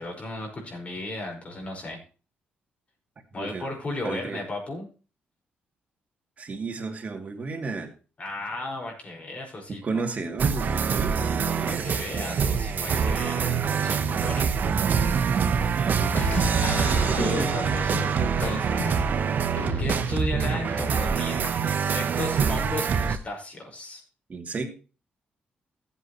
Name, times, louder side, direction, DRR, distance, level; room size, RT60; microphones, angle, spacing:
voice 1, 0.0-2.0 3.3-4.9 8.2-10.0 11.4-14.5 16.6-18.9 19.8-24.0, left 2 dB, 40° left, 1 dB, 5.2 m, -35 dB
voice 2, 3.4-3.7 4.0-4.4 6.4-7.9 9.8-11.9 15.2-15.4 15.7-16.5 16.8-17.5 24.3-24.7, right 3 dB, 45° right, 3 dB, 2.7 m, -33 dB
sound 1, 10.4-23.2, right 6 dB, 60° right, 1.0 m, -25 dB
sound 2, 16.1-22.0, left 3 dB, 70° left, 3.3 m, -35 dB
15.0 x 8.2 x 3.1 m, 0.34 s
cardioid pair, 90°, 4 cm